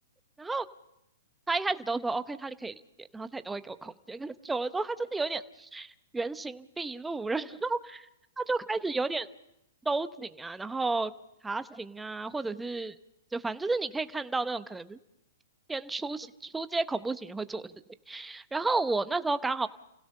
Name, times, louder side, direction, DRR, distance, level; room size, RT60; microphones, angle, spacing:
voice 1, 1.5-8.1 8.4-9.3 9.8-11.1 11.4-12.9 13.3-15.0 15.7-17.7 18.1-19.7, right 3 dB, 5° right, 12 dB, 0.8 m, -32 dB
30.0 x 16.5 x 5.5 m, 0.83 s
hypercardioid pair, 130°, 0 cm